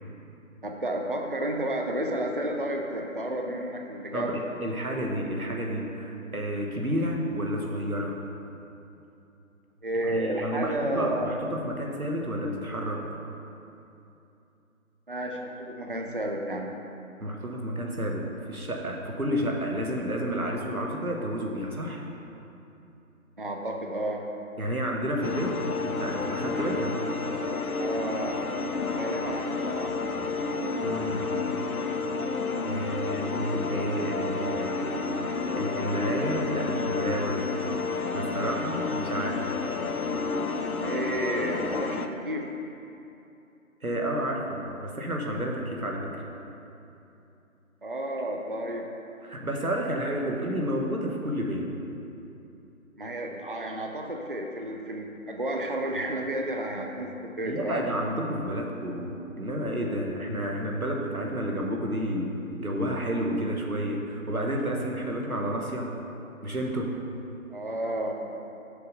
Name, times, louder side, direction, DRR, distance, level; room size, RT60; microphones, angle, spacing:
voice 1, 0.6-4.4 9.8-11.3 15.1-16.7 23.4-24.2 27.8-30.0 38.3-38.6 40.8-42.5 47.8-48.9 53.0-57.1 57.4-57.9 67.5-68.1, right 1 dB, 40° right, 2 dB, 0.5 m, -31 dB
voice 2, 4.1-8.2 10.1-13.0 17.2-22.0 24.6-25.5 25.9-27.0 30.8-31.3 32.6-34.9 35.2-37.6 38.1-39.4 43.8-46.2 49.2-51.7 57.4-62.3 62.6-65.9 66.4-66.9, equal, 90° right, 0 dB, 1.3 m, -30 dB
sound 1, 25.2-42.1, left 4 dB, 85° left, 0.7 m, -30 dB
6.7 x 5.1 x 5.4 m, 2.8 s
figure-of-eight pair, 160°, 42 cm